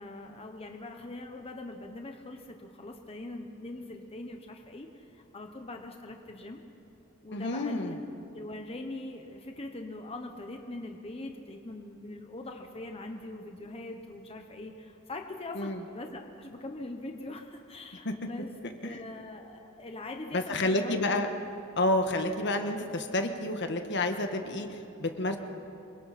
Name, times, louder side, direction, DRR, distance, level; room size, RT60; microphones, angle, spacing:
voice 1, 0.0-6.6 7.2-7.9 8.3-18.5 18.8-21.1, left 2 dB, 30° left, 3 dB, 1.1 m, -42 dB
voice 2, 7.3-8.0 15.5-15.8 18.0-18.1 18.8-19.0 20.3-21.3 21.8-25.4, left 2 dB, 60° left, 5 dB, 1.5 m, -29 dB
27.0 x 23.5 x 4.3 m, 2.8 s
head